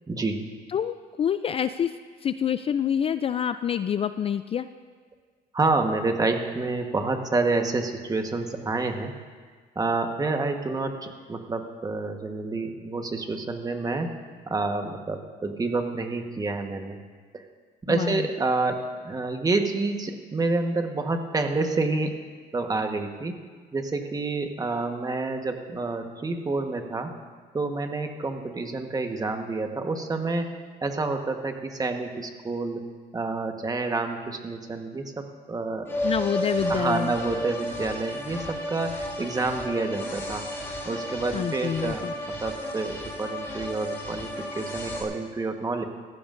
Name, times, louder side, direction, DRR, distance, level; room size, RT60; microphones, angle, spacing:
voice 1, 0.1-0.5 5.5-9.1 9.7-14.2 14.5-17.0 17.3-17.4 17.8-22.2 22.5-23.4 23.7-27.1 27.5-30.5 30.8-32.8 33.1-35.9 36.7-40.5 40.8-45.8, right 3 dB, 20° right, 5 dB, 1.2 m, -28 dB
voice 2, 0.7-4.7 17.9-18.3 36.0-37.1 41.3-42.1, left 8 dB, 35° left, 11 dB, 0.4 m, -27 dB
sound 1, 35.8-45.0, equal, 15° left, 3.3 m, -33 dB
16.5 x 14.5 x 2.6 m, 1.5 s
cardioid pair, 110°, 17 cm